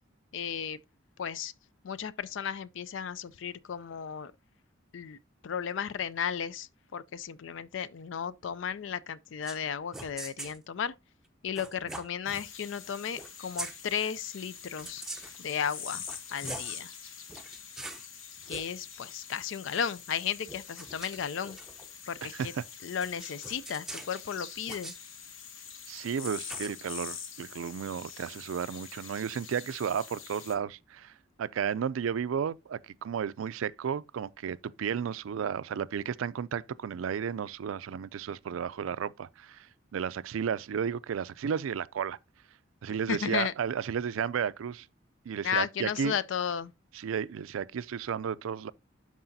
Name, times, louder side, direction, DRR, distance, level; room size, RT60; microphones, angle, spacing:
voice 1, 0.3-0.8 1.2-1.5 1.8-4.3 4.9-5.2 5.4-10.9 11.4-15.0 15.4-16.0 16.3-16.9 18.5-21.6 22.1-22.5 22.8-24.9 43.1-43.5 45.4-46.7, left 7 dB, 65° left, 0.4 m, -34 dB
sound 1, 9.4-9.6 9.9-10.6 11.6-12.5 13.1-13.3 13.6-13.8 14.8-15.4 16.0-16.8 17.3-18.1 18.4-18.7 20.5-22.0 23.0-24.2 24.7-25.0 26.2-26.7, right 2 dB, ahead, 0.7 m, -42 dB
sound 2, 12.3-30.6, left 7 dB, 80° left, 1.1 m, -45 dB
voice 2, 22.2-22.6 25.9-31.1 31.4-42.2 42.8-44.9 45.3-46.2 46.9-48.7, right 7 dB, 85° right, 0.4 m, -33 dB
11.5 x 4.8 x 2.6 m
head